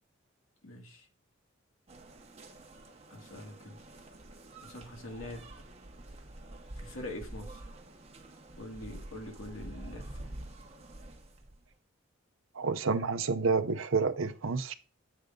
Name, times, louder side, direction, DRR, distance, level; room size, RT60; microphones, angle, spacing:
voice 1, 0.6-1.1 3.1-3.8 4.6-5.5 6.8-7.7 8.6-10.4, left 1 dB, 80° left, 2.0 m, -44 dB
sound 1, 1.9-11.7, right 1 dB, 30° right, 0.9 m, -48 dB
voice 2, 12.5-14.7, right 4 dB, 75° right, 0.6 m, -29 dB
8.1 x 3.6 x 5.2 m
head